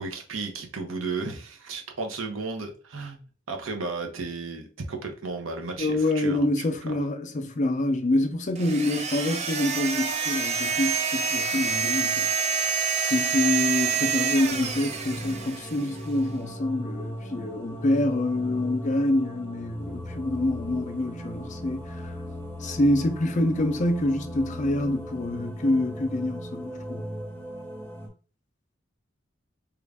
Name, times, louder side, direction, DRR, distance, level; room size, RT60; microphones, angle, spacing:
voice 1, 0.0-6.5, right 3 dB, 85° right, 0.8 m, -34 dB
voice 2, 5.8-12.7 13.0-22.2 22.6-27.0, left 1 dB, 40° left, 0.4 m, -26 dB
sound 1, 8.6-15.9, right 6 dB, 35° right, 0.4 m, -27 dB
sound 2, 14.5-28.1, equal, 10° left, 0.7 m, -37 dB
3.1 x 2.4 x 3.4 m
head